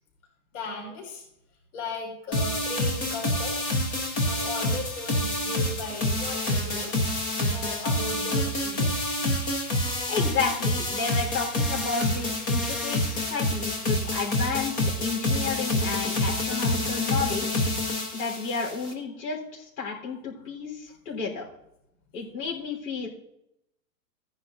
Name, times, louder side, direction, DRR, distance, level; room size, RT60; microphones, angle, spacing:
voice 1, 0.5-1.2 1.7-3.7 4.3-6.9 7.4-9.2 13.2-13.3, left 2 dB, 65° left, -1 dB, 3.4 m, -37 dB
sound 1, 2.3-18.9, left 1 dB, 15° left, 0.3 m, -27 dB
voice 2, 10.1-17.6 18.1-21.4 22.1-23.1, left 5 dB, 85° left, 0 dB, 3.8 m, -32 dB
15.0 x 9.7 x 2.5 m, 0.82 s
supercardioid pair, 155°, 46 cm